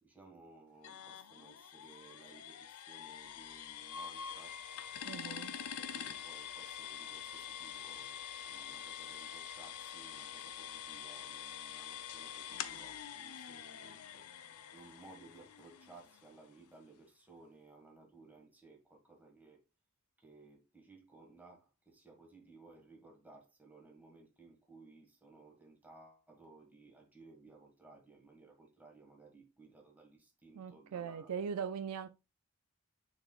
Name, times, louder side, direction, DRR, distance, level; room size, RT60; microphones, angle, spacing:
voice 1, 0.0-4.6 5.1-14.3 14.6-19.6 20.2-31.3, right 3 dB, 5° right, 1.7 m, -59 dB
sound 1, 0.8-16.5, left 9 dB, 75° left, 0.6 m, -46 dB
Wind instrument woodwind instrument, 4.4-9.8, left 6 dB, 35° left, 0.4 m, -53 dB
voice 2, 5.1-5.5 30.6-32.1, right 7 dB, 80° right, 0.4 m, -40 dB
9.6 x 4.0 x 2.4 m
head